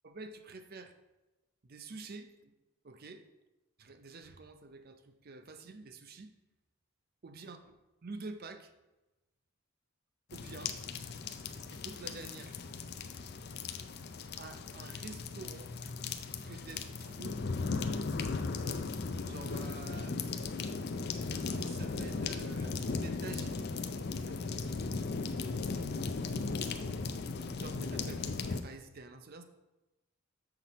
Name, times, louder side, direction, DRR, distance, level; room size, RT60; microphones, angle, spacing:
voice 1, 0.0-0.9 1.7-2.5 2.8-3.2 3.8-6.3 7.2-7.8 8.0-8.7 10.3-10.8 11.7-12.6 14.4-15.7 16.5-17.4 19.2-20.5 21.3-23.7 24.1-24.4 27.6-29.4, right 3 dB, 45° right, 8 dB, 0.5 m, -48 dB
sound 1, 10.3-28.6, left 4 dB, 50° left, 0.4 m, -37 dB
7.4 x 5.9 x 4.1 m, 1.0 s
head